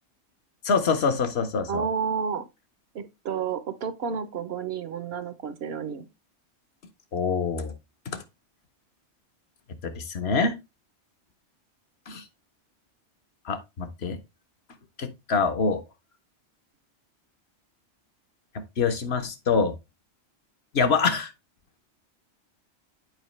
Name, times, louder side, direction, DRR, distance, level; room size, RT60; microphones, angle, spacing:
voice 1, 0.6-1.9 7.1-7.7 8.1-8.2 9.8-10.6 12.1-12.2 13.4-14.2 15.0-15.8 18.8-19.7 20.7-21.3, left 5 dB, 65° left, 1.1 m, -25 dB
voice 2, 1.7-2.5 2.9-6.0, right 7 dB, 65° right, 0.9 m, -31 dB
7.9 x 4.7 x 3.1 m
omnidirectional pair, 1.2 m